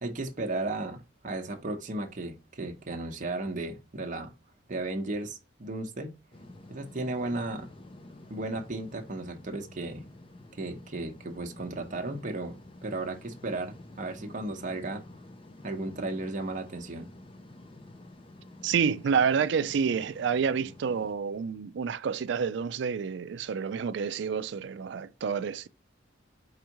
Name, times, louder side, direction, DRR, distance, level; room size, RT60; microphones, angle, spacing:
voice 1, 0.0-4.3 4.7-6.1 6.7-7.7 8.3-10.1 10.5-12.5 12.8-15.0 15.6-17.1, right 2 dB, 40° right, 0.8 m, -35 dB
sound 1, 6.3-21.1, left 1 dB, 30° left, 0.5 m, -50 dB
voice 2, 18.6-25.7, right 6 dB, 65° right, 0.4 m, -28 dB
4.8 x 3.5 x 2.9 m
head